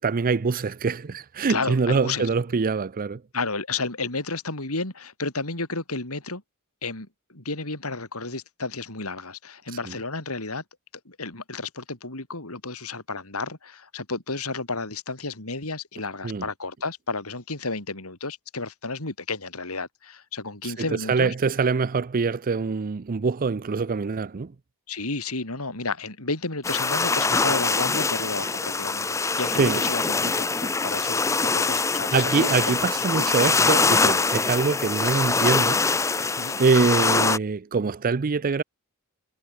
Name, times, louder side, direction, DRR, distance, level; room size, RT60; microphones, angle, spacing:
voice 1, 0.0-3.2 16.2-16.4 21.1-24.5 29.6-29.8 32.1-36.3 36.6-38.6, right 4 dB, 40° right, 0.5 m, -24 dB
voice 2, 1.5-2.3 3.3-6.4 6.8-10.6 11.0-21.3 24.9-31.2 31.5-32.5 32.8-33.3 36.4-36.6, left 3 dB, 80° left, 4.8 m, -32 dB
sound 1, 26.6-37.4, left 4 dB, 15° left, 0.4 m, -23 dB
head